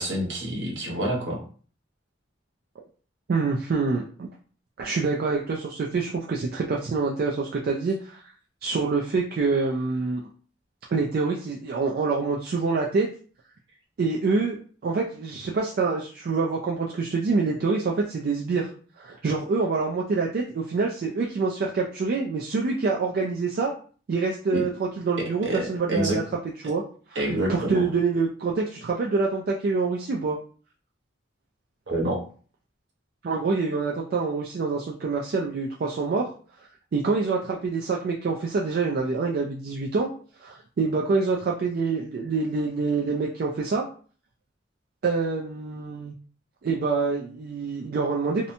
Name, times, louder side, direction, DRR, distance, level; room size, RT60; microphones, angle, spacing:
voice 1, 0.0-1.4 24.5-24.6 25.4-26.2 27.1-27.9 31.9-32.2, right 1 dB, 70° right, -2 dB, 0.8 m, -27 dB
voice 2, 3.3-4.3 4.8-8.2 8.6-10.2 10.9-13.1 14.0-14.6 14.8-18.7 19.0-23.7 24.1-26.2 26.6-26.8 27.1-30.4 33.2-36.3 36.9-40.1 40.4-43.9 45.0-46.1 46.6-48.5, right 4 dB, 50° right, -1 dB, 0.3 m, -26 dB
2.8 x 2.1 x 2.6 m, 0.42 s
head